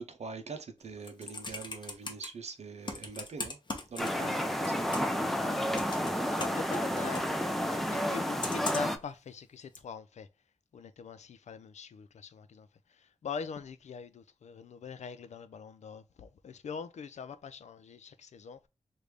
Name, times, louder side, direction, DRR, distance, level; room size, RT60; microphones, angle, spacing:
voice 1, 0.0-3.6 3.9-5.2, right 5 dB, 65° right, 0.6 m, -43 dB
Computer keyboard, 0.8-2.3 2.8-4.4 4.6-5.2 5.7-7.3 8.4-9.0 9.7-9.8, left 2 dB, 40° left, 0.8 m, -39 dB
sound 1, 4.0-9.0, equal, ahead, 0.4 m, -31 dB
voice 2, 4.1-4.4 5.3-5.7 6.3-10.3 10.7-18.7, left 6 dB, 70° left, 0.4 m, -43 dB
3.3 x 2.6 x 3.2 m
wide cardioid pair, 135°, 12 cm